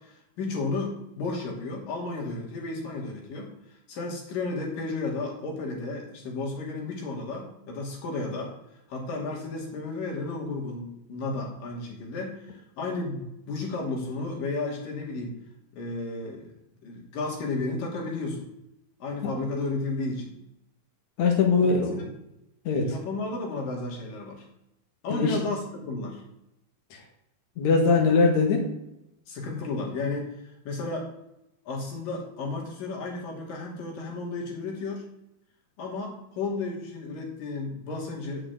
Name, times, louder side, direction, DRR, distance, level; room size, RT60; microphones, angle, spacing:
voice 1, 0.0-3.5 3.9-8.5 8.9-15.4 15.7-16.6 16.8-18.4 19.0-20.4 21.7-21.8 22.9-24.5 25.0-26.2 29.3-30.4 30.7-31.1 31.7-35.1 35.8-38.5, left 3 dB, 80° left, -1 dB, 4.2 m, -33 dB
voice 2, 21.2-22.0 22.6-22.9 25.1-25.4 27.6-28.7, left 4 dB, 60° left, 0 dB, 2.9 m, -21 dB
8.9 x 6.9 x 8.2 m, 0.82 s
omnidirectional pair, 3.8 m